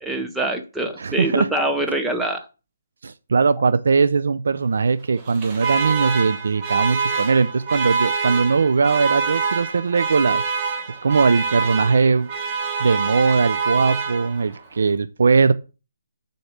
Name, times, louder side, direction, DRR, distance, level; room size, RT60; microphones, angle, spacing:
voice 1, 0.0-2.4, right 1 dB, 5° right, 0.7 m, -24 dB
voice 2, 1.0-1.5 3.0-10.4 11.0-12.3 12.8-15.5, right 4 dB, 65° right, 0.4 m, -20 dB
Alarm, 5.2-14.6, right 5 dB, 20° right, 1.2 m, -25 dB
6.6 x 4.2 x 6.2 m
hypercardioid pair, 170°, 0 cm